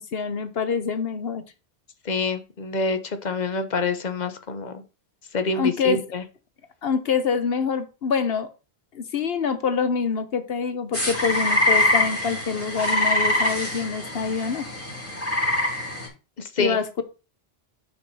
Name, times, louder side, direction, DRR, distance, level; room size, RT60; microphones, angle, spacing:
voice 1, 0.0-1.4 5.5-6.0 6.8-8.5 8.9-14.7 16.6-17.0, left 6 dB, 70° left, 10 dB, 1.1 m, -25 dB
voice 2, 2.0-4.7 5.3-6.2 16.4-16.8, left 3 dB, 45° left, 9 dB, 1.0 m, -26 dB
sound 1, 10.9-16.1, left 2 dB, 15° left, 3.4 m, -24 dB
6.4 x 6.3 x 4.1 m, 0.31 s
omnidirectional pair, 1.1 m